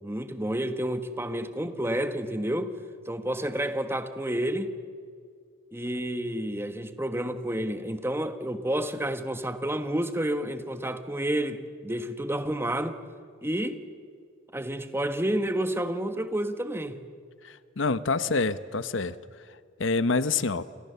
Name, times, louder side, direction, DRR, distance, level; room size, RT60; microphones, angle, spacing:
voice 1, 0.0-2.7 3.1-4.7 5.7-13.0 13.4-13.8 14.5-17.0, right 1 dB, 10° right, 1.3 m, -30 dB
voice 2, 17.8-19.1 19.8-20.6, left 4 dB, 70° left, 0.9 m, -26 dB
29.0 x 28.5 x 6.9 m
head